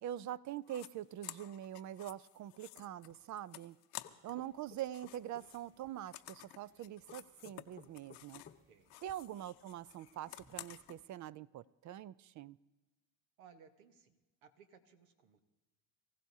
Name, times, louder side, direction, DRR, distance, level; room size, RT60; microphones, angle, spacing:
voice 1, 0.0-3.8 4.2-8.4 9.0-12.6, right 12 dB, 45° right, 19 dB, 0.5 m, -44 dB
sound 1, 0.7-0.9 1.2-4.5 4.7-8.6 8.9-11.0, left 16 dB, 75° left, 0.8 m, -52 dB
sound 2, 4.0-5.5 7.1-8.6, left 7 dB, 25° left, 0.9 m, -57 dB
sound 3, 4.4-11.1, right 2 dB, 25° right, 2.9 m, -74 dB
voice 2, 13.4-15.5, right 7 dB, 90° right, 8 dB, 1.3 m, -62 dB
24.0 x 15.5 x 2.8 m, 1.1 s
supercardioid pair, 75°, 41 cm